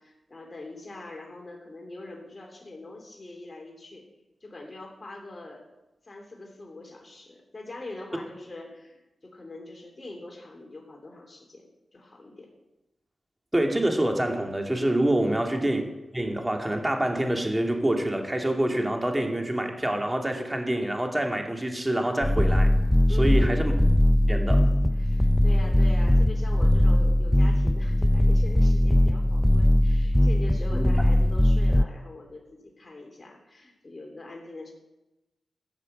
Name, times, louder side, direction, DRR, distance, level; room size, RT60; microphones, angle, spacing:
voice 1, 0.0-4.0 4.4-5.6 6.0-12.5 15.2-15.5 23.1-23.6 24.9-34.7, left 2 dB, 40° left, 0 dB, 2.9 m, -43 dB
voice 2, 13.5-15.8 16.1-22.7 23.2-23.7 24.3-24.7 30.7-30.9, right 1 dB, 20° right, 3 dB, 2.4 m, -26 dB
sound 1, 22.2-31.8, left 1 dB, 10° left, 0.5 m, -20 dB
13.5 x 6.5 x 8.8 m, 1.0 s
cardioid pair, 50°, 0 cm